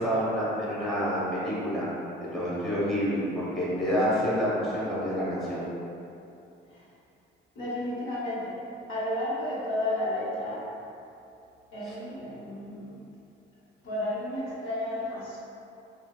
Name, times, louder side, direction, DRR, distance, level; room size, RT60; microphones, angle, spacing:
voice 1, 0.0-1.9 2.2-5.7, equal, ahead, -9 dB, 0.8 m, -28 dB
voice 2, 7.5-8.6 8.9-10.6 11.7-13.0 13.8-15.4, left 1 dB, 90° left, -8 dB, 0.8 m, -32 dB
2.7 x 2.3 x 2.2 m, 2.7 s
cardioid pair, 90°, 20 cm